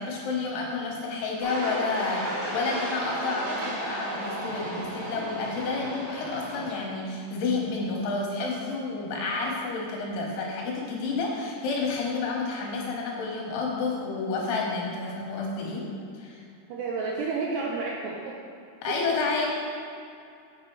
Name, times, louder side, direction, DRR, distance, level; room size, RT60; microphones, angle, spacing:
voice 1, 0.0-15.9 16.1-16.4 18.8-19.5, left 3 dB, 75° left, -2 dB, 3.5 m, -30 dB
sound 1, 1.4-6.8, right 1 dB, 70° right, 1.4 m, -34 dB
voice 2, 16.7-18.4 18.9-19.0, right 4 dB, 90° right, -3 dB, 2.4 m, -31 dB
7.6 x 6.6 x 4.6 m, 2.5 s
omnidirectional pair, 5.6 m